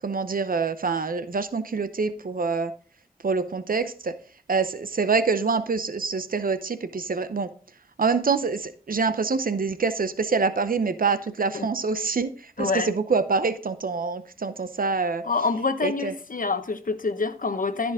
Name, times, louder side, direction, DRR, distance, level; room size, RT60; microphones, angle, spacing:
voice 1, 0.0-2.7 3.2-4.2 4.5-7.5 8.0-15.2 15.8-16.1, right 4 dB, 65° right, 0.7 m, -26 dB
voice 2, 12.6-12.9 15.2-17.9, left 4 dB, 65° left, 1.0 m, -26 dB
14.0 x 5.2 x 3.6 m
wide cardioid pair, 45°, 15 cm